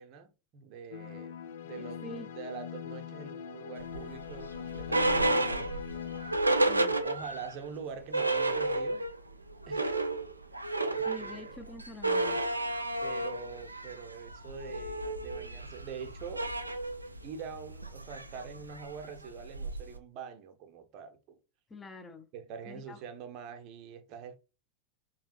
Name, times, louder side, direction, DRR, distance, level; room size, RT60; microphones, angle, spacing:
voice 1, 0.0-1.3 1.6-5.7 7.0-9.0 9.7-10.1 10.9-11.6 13.0-16.5 17.2-21.4 22.3-24.4, right 6 dB, 40° right, 0.7 m, -44 dB
sound 1, 0.9-6.4, left 9 dB, 60° left, 0.4 m, -42 dB
sound 2, 3.9-7.5 7.8-7.9 8.1-9.2 9.5-20.0, right 2 dB, 85° right, 0.4 m, -31 dB
voice 2, 6.6-7.0 11.1-12.4 21.7-22.3 22.7-23.0, left 2 dB, 15° left, 0.6 m, -45 dB
3.6 x 3.0 x 3.0 m
figure-of-eight pair, 90°, 0 cm